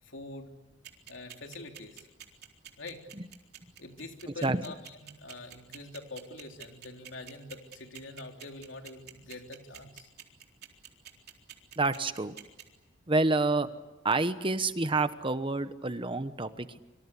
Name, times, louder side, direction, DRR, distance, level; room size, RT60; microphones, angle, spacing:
voice 1, 0.0-0.5 1.1-2.1 2.8-3.0 3.8-10.1, left 2 dB, 70° left, 3 dB, 3.5 m, -45 dB
sound 1, 0.8-12.6, right 10 dB, 55° right, 4.0 m, -47 dB
voice 2, 11.8-12.3 13.1-13.7 14.0-16.8, right 3 dB, 25° right, 11 dB, 1.1 m, -28 dB
26.5 x 25.5 x 8.4 m, 1.0 s
head